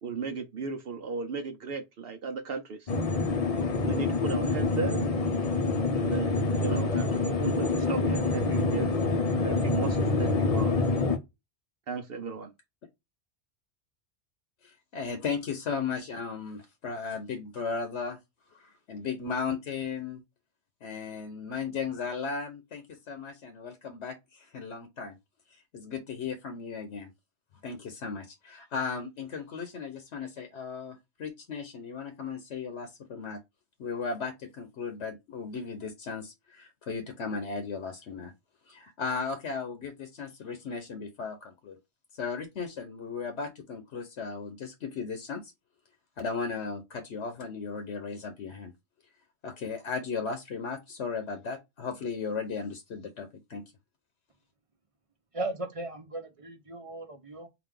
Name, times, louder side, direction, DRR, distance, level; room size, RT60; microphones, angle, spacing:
voice 1, 0.0-2.9 3.8-5.1 6.0-8.9 9.4-10.8 11.9-12.5, right 5 dB, 60° right, 0.8 m, -36 dB
sound 1, 2.9-11.2, left 3 dB, 40° left, 0.6 m, -26 dB
voice 2, 14.6-18.2 18.5-20.2 20.8-25.1 25.5-27.1 27.6-33.4 33.8-38.3 38.7-41.8 42.1-45.5 46.2-48.7 49.4-53.6, left 5 dB, 75° left, 1.1 m, -36 dB
voice 3, 55.3-57.5, right 2 dB, 30° right, 0.8 m, -37 dB
4.0 x 2.5 x 3.6 m
omnidirectional pair, 1.2 m